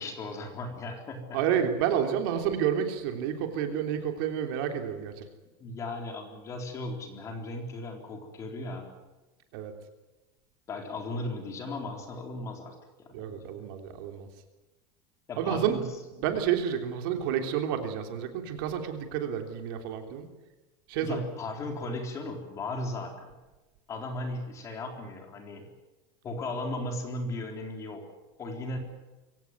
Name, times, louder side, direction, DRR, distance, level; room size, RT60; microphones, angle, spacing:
voice 1, 0.0-1.6 5.6-8.9 10.7-13.7 15.3-15.9 21.0-23.3 23.9-25.7 26.2-28.1 28.4-28.8, left 2 dB, 25° left, 4 dB, 3.9 m, -36 dB
voice 2, 1.3-5.2 9.5-9.7 13.1-14.3 15.4-15.9 16.2-20.3 20.9-21.2, right 9 dB, 60° right, 6 dB, 3.3 m, -30 dB
23.5 x 17.5 x 9.6 m, 1.1 s
supercardioid pair, 170°, 13 cm